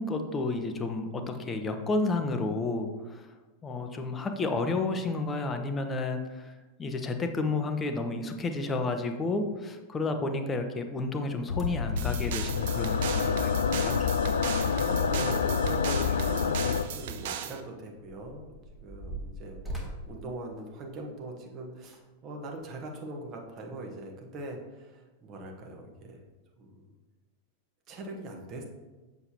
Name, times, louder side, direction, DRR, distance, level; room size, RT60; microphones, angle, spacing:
voice 1, 0.0-3.3 3.6-6.5 6.8-14.0, left 3 dB, 20° left, 6 dB, 0.8 m, -31 dB
sound 1, 11.5-16.8, left 6 dB, 70° left, 0.3 m, -28 dB
sound 2, 11.5-11.9 13.7-13.8 14.0-14.1 14.4-16.2 16.6-16.7 17.4-21.2 21.8-22.0 22.6-22.7, right 1 dB, ahead, 1.3 m, -43 dB
sound 3, 12.0-17.6, right 9 dB, 55° right, 0.5 m, -37 dB
voice 2, 14.7-26.2 26.6-26.9 27.9-28.6, right 2 dB, 35° right, 1 dB, 1.2 m, -41 dB
6.8 x 6.8 x 2.9 m, 1.2 s
figure-of-eight pair, 90°, 0 cm